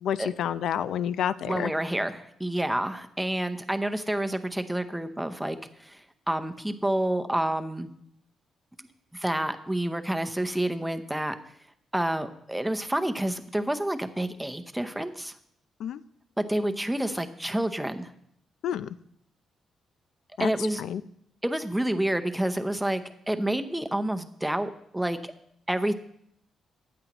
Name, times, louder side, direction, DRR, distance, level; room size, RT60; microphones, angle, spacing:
voice 1, 0.0-1.7 15.8-16.0 18.6-19.0 20.4-20.5 20.8-21.0, left 9 dB, 75° left, 15 dB, 0.4 m, -29 dB
voice 2, 1.5-6.0 6.3-7.9 8.8-8.9 9.1-11.4 11.9-15.3 16.4-18.1 20.4-20.8 21.4-23.0 23.3-25.2 25.7-25.9, right 1 dB, 5° right, 8 dB, 0.7 m, -29 dB
14.5 x 9.5 x 3.0 m, 0.72 s
cardioid pair, 130°, 0 cm